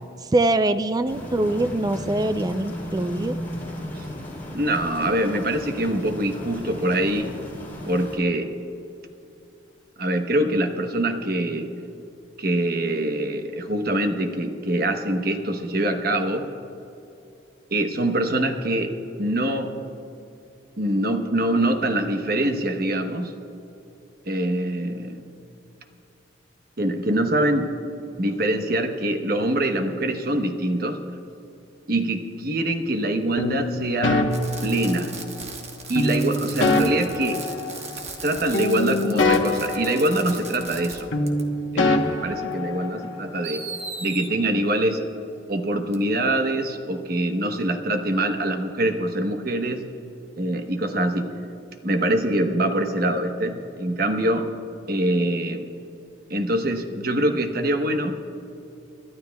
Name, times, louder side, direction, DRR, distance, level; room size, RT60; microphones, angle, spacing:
voice 1, 0.2-3.4, right 2 dB, 20° right, 10 dB, 0.4 m, -23 dB
sound 1, 1.0-8.2, equal, 10° left, 3.5 m, -35 dB
voice 2, 4.5-7.3 7.9-8.5 10.0-11.7 12.4-16.5 17.7-18.9 19.2-19.7 20.8-23.3 24.3-25.2 26.8-27.7 28.2-31.0 31.9-34.2 34.6-35.1 35.9-37.4 38.2-41.1 41.7-43.6 44.0-45.0 45.5-49.8 50.4-51.3 51.8-54.5 54.9-55.7 56.3-58.2, right 1 dB, 50° right, 5 dB, 1.0 m, -24 dB
sound 2, 33.4-35.4 36.0-38.3 38.5-40.9 41.1-43.2, left 2 dB, 90° left, 1.1 m, -25 dB
Fireworks, 34.3-41.0 41.3-41.4 42.5-42.6 43.4-44.3 45.9-46.0, right 4 dB, 35° right, 1.2 m, -38 dB
29.0 x 12.5 x 2.3 m, 2.8 s
head